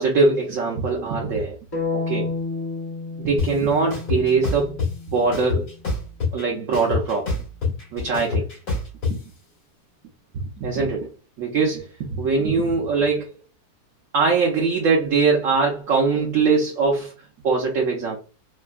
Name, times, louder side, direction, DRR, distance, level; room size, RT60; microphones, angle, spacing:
voice 1, 0.0-1.6 1.9-2.3 3.2-4.7 5.1-5.7 6.3-7.3 7.9-8.5 9.1-9.2 10.6-11.1 11.4-13.3 14.1-17.1 17.4-18.2, right 4 dB, 65° right, 1.0 m, -21 dB
sound 1, 1.7-5.8, left 3 dB, 30° left, 0.4 m, -31 dB
sound 2, 3.4-3.5 3.9-4.9 5.3-6.4 6.7-9.1, left 4 dB, 85° left, 2.4 m, -24 dB
4.4 x 2.1 x 2.3 m
omnidirectional pair, 1.6 m